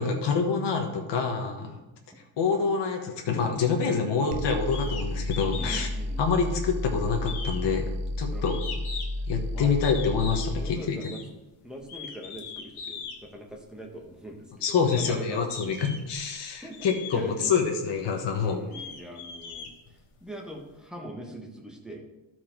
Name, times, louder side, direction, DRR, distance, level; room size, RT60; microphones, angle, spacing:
voice 1, 0.0-1.8 2.4-5.9 6.2-7.8 8.2-8.6 9.3-11.0 14.6-18.7, left 5 dB, 55° left, 2 dB, 1.3 m, -26 dB
voice 2, 1.6-1.9 5.6-6.2 8.3-8.6 9.5-9.7 10.4-11.2 11.6-15.9 16.6-17.5 18.4-19.7 20.2-22.0, equal, ahead, 0 dB, 1.2 m, -42 dB
sound 1, 4.3-10.7, left 1 dB, 55° right, 0.8 m, -32 dB
sound 2, 4.7-5.1 5.3-5.9 6.2-6.8 7.2-9.3 9.8-10.5 11.0-11.3 11.8-13.2 14.0-14.1 14.6-15.1 15.5-16.2 16.7-17.2 17.8-17.9 18.4-20.3, left 6 dB, 80° left, 1.5 m, -39 dB
12.5 x 4.7 x 4.5 m, 0.99 s
cardioid pair, 160°, 50 cm